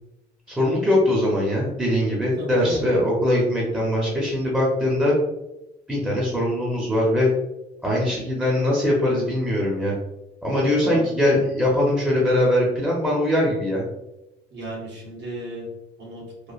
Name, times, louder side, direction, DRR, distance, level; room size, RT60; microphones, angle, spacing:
voice 1, 0.5-5.1 5.9-7.3 7.8-9.9 10.4-13.8, left 1 dB, 5° right, -5 dB, 0.7 m, -21 dB
voice 2, 2.3-2.8 10.8-11.1 14.5-15.7 16.0-16.2, right 2 dB, 65° right, -4 dB, 1.3 m, -34 dB
3.1 x 2.1 x 2.4 m, 0.93 s
cardioid pair, 90°, 20 cm